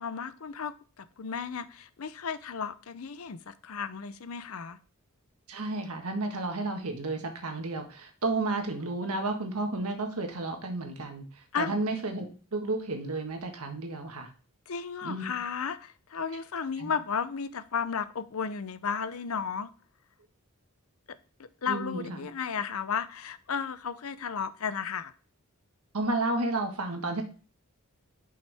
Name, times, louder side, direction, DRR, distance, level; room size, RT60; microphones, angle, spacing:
voice 1, 0.0-4.8 11.5-11.8 14.7-19.7 21.4-25.1, left 6 dB, 65° left, 14 dB, 0.6 m, -34 dB
voice 2, 5.5-12.3 12.5-14.3 15.0-15.3 16.8-16.9 21.7-22.3 25.9-27.2, right 2 dB, 75° right, 4 dB, 1.5 m, -32 dB
6.4 x 5.6 x 3.4 m, 0.38 s
head